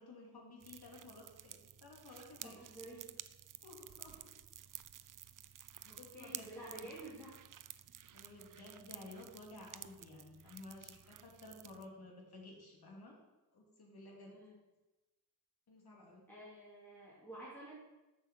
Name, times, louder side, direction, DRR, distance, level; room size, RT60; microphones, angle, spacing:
voice 1, 0.0-2.6 3.6-4.3 5.8-6.7 8.1-13.2 13.5-14.3 15.7-16.2, left 2 dB, 75° left, -1 dB, 2.7 m, -54 dB
sound 1, 0.6-11.9, right 10 dB, 55° right, 0.5 m, -53 dB
voice 2, 2.4-3.1 5.9-7.4 14.3-14.6 16.3-17.7, right 1 dB, 5° left, -8 dB, 3.0 m, -51 dB
7.8 x 6.2 x 7.4 m, 1.1 s
wide cardioid pair, 125°, 38 cm